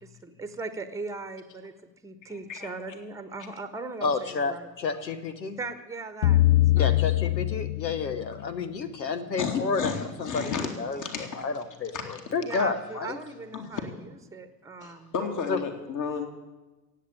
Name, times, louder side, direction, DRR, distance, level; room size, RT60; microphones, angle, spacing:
voice 1, 0.0-1.7 2.0-4.7 5.6-6.4 6.8-7.0 12.4-13.9 14.3-15.1, right 3 dB, 5° right, 11 dB, 1.2 m, -38 dB
voice 2, 2.3-2.7 9.4-11.4 11.9-12.2 12.5-12.6 13.5-13.9 14.8-16.3, left 6 dB, 35° left, 5 dB, 2.5 m, -33 dB
voice 3, 4.0-5.6 6.7-13.2 15.5-15.6, left 4 dB, 85° left, 12 dB, 1.1 m, -30 dB
sound 1, 6.2-8.6, left 15 dB, 60° left, 0.6 m, -23 dB
17.0 x 8.1 x 8.8 m, 1.1 s
figure-of-eight pair, 65°, 50 cm